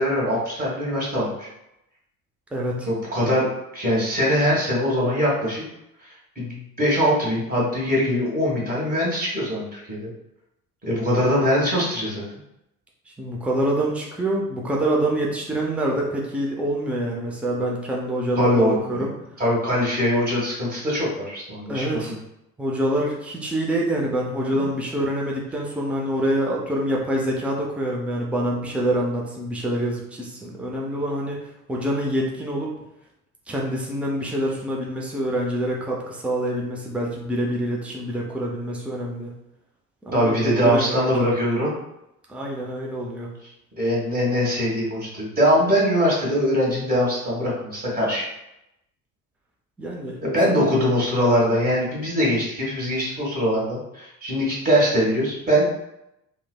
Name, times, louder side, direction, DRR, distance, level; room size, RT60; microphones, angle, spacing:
voice 1, 0.0-1.5 2.9-5.6 6.4-10.1 10.8-12.2 18.4-19.1 19.4-22.2 24.6-24.7 40.1-41.7 43.8-48.2 50.2-55.6, equal, 20° right, -5 dB, 1.4 m, -22 dB
voice 2, 2.5-2.9 13.2-19.1 21.7-22.1 22.6-31.4 31.7-32.7 33.5-39.3 40.1-40.3 40.6-41.0 42.3-43.3 49.8-50.2 50.4-50.5, right 1 dB, 5° right, -2 dB, 0.6 m, -26 dB
3.2 x 2.1 x 2.3 m, 0.85 s
figure-of-eight pair, 55°, 42 cm